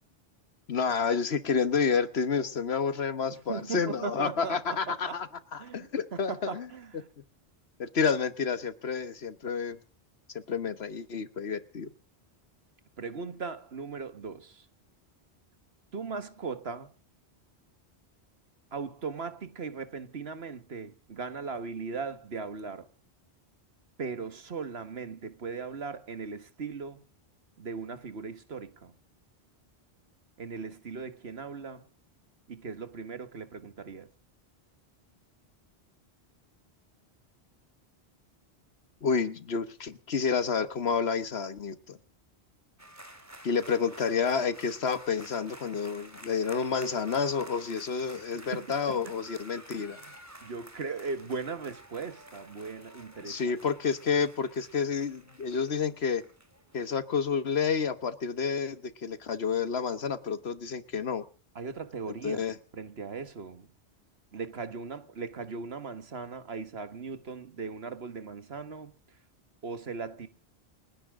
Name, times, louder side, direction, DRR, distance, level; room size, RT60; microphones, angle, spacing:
voice 1, 0.7-6.6 7.8-9.8 10.5-11.9 39.0-42.0 43.4-50.0 53.2-56.2 56.7-61.2 62.2-62.6, left 6 dB, 75° left, 1.4 m, -29 dB
voice 2, 3.5-4.6 4.9-5.2 5.6-7.1 13.0-14.7 15.9-16.9 18.7-22.9 24.0-27.0 27.6-28.9 30.4-31.9 32.5-34.1 48.5-48.7 49.0-49.1 49.7-50.1 50.4-53.5 61.6-62.4 62.7-63.7 64.3-68.9 69.6-70.3, right 4 dB, 70° right, 1.7 m, -38 dB
sound 1, 42.8-56.9, right 1 dB, 15° right, 2.3 m, -51 dB
29.5 x 10.5 x 3.7 m
omnidirectional pair, 1.1 m